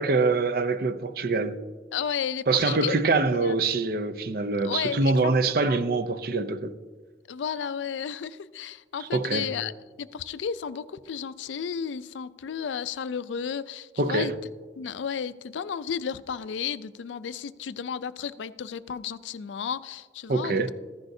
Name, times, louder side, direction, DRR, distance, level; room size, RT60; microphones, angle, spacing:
voice 1, 0.0-1.6 2.5-6.8 9.0-9.6 14.0-14.4 20.3-20.7, right 3 dB, 55° right, 0.5 m, -25 dB
voice 2, 1.9-3.0 3.4-3.5 4.6-5.3 5.7-5.8 7.3-9.7 10.0-14.3 14.8-20.7, left 7 dB, 90° left, 0.4 m, -33 dB
14.5 x 10.5 x 2.7 m
head